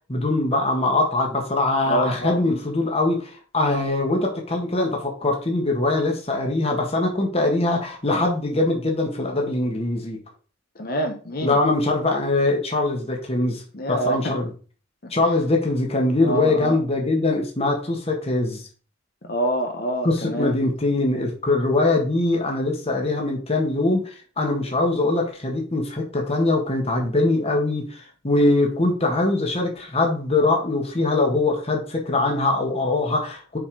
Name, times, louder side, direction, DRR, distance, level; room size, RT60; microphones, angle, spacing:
voice 1, 0.1-10.2 11.4-13.6 13.9-14.5 15.1-18.6 20.0-33.6, left 2 dB, 35° left, 1 dB, 1.7 m, -22 dB
voice 2, 1.9-2.6 10.8-11.6 13.7-14.3 15.0-15.1 16.2-16.8 19.2-20.5, right 1 dB, 55° left, 4 dB, 1.1 m, -26 dB
6.9 x 4.5 x 4.8 m, 0.38 s
head